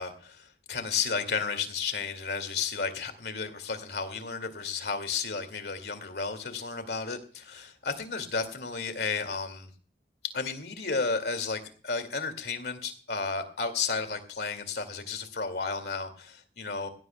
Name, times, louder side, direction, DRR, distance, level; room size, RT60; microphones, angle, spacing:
voice 1, 0.0-9.7 10.2-16.9, left 5 dB, 70° left, 8 dB, 2.3 m, -33 dB
19.5 x 17.0 x 2.3 m, 0.42 s
head